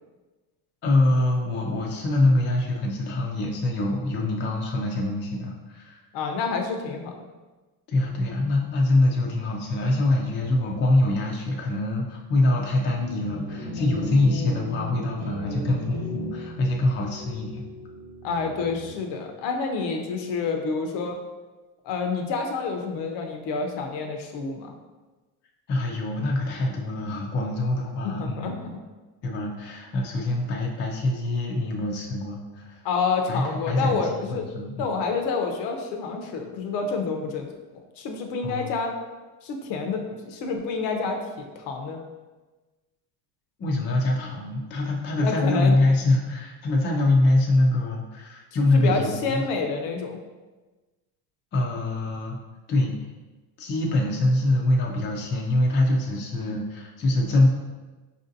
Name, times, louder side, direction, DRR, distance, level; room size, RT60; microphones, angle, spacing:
voice 1, 0.8-6.0 7.9-17.6 25.7-28.6 29.2-32.8 33.3-34.9 38.4-38.7 43.6-49.4 51.5-52.4 52.7-52.9 53.6-57.5, left 2 dB, 25° left, -1 dB, 0.4 m, -24 dB
voice 2, 6.1-7.3 18.2-21.2 21.8-24.7 28.0-28.7 32.8-34.5 34.8-37.5 38.0-38.9 39.4-41.3 41.6-42.0 45.2-45.8 48.6-50.2, left 4 dB, 60° left, 3 dB, 0.7 m, -28 dB
sound 1, 12.9-19.2, equal, 15° right, 1.1 m, -36 dB
4.8 x 2.6 x 2.6 m, 1.2 s
supercardioid pair, 115°, 47 cm